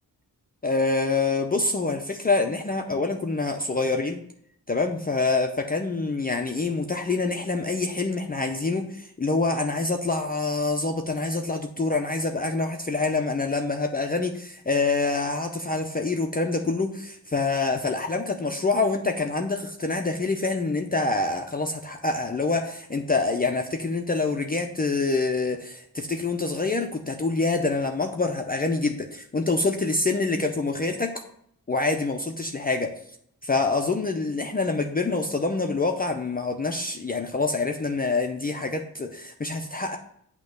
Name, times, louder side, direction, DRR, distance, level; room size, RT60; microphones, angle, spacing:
voice 1, 0.6-4.2 4.7-31.1 31.7-33.0 33.4-40.0, left 3 dB, 25° left, 3 dB, 0.5 m, -26 dB
8.5 x 2.9 x 6.4 m, 0.68 s
wide cardioid pair, 155°, 37 cm